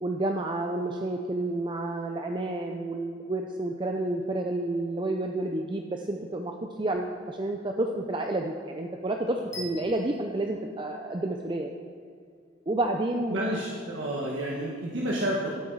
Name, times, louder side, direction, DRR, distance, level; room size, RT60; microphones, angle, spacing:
voice 1, 0.0-11.7 12.7-13.4, right 2 dB, 25° right, 3 dB, 0.5 m, -30 dB
sound 1, 9.5-11.6, left 1 dB, 15° left, 2.0 m, -44 dB
voice 2, 13.3-15.5, right 1 dB, 80° right, -3 dB, 1.4 m, -30 dB
13.0 x 8.6 x 4.7 m, 2.2 s
head